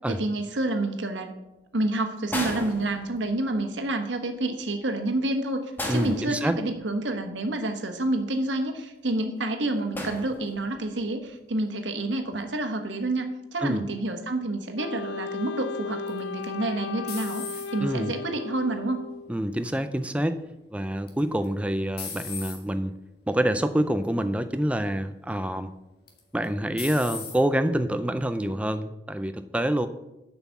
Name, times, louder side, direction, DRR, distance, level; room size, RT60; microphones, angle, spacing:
voice 1, 0.1-1.3 1.7-19.0, right 2 dB, 90° right, 6 dB, 1.3 m, -29 dB
sound 1, 2.3-3.5 5.8-7.0 9.9-10.9 12.1-12.4, left 1 dB, 10° left, 1.4 m, -35 dB
voice 2, 5.9-6.6 13.6-13.8 17.8-18.1 19.3-20.4 20.7-22.9 23.3-25.7 26.3-29.9, right 1 dB, 5° right, 10 dB, 0.5 m, -26 dB
Wind instrument woodwind instrument, 14.8-19.4, left 4 dB, 85° left, 0.3 m, -35 dB
sound 2, 16.1-18.0 18.5-19.1 21.1-21.5 22.0-22.6 23.4-23.6 24.0-24.1 26.1-26.5 26.8-27.4, left 6 dB, 55° left, 1.8 m, -38 dB
8.0 x 6.0 x 7.0 m, 0.95 s
head